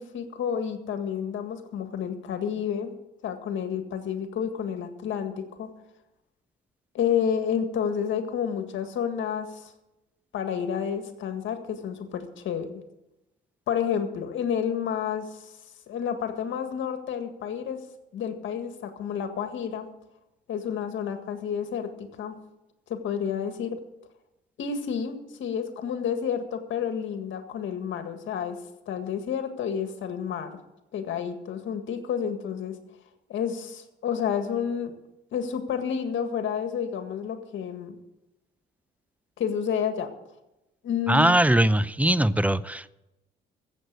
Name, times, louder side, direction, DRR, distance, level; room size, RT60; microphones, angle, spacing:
voice 1, 0.0-2.9 3.2-5.7 6.9-9.7 10.3-12.8 13.7-15.5 15.9-17.8 18.1-19.9 20.5-22.4 22.9-23.8 24.6-28.6 28.9-30.5 30.9-32.7 33.3-34.9 35.3-38.0 39.4-40.1 40.8-41.3, left 8 dB, 75° left, 7 dB, 1.8 m, -30 dB
voice 2, 41.1-42.9, right 1 dB, 5° right, 16 dB, 0.6 m, -21 dB
15.0 x 7.9 x 8.0 m, 0.96 s
cardioid pair, 90°, 20 cm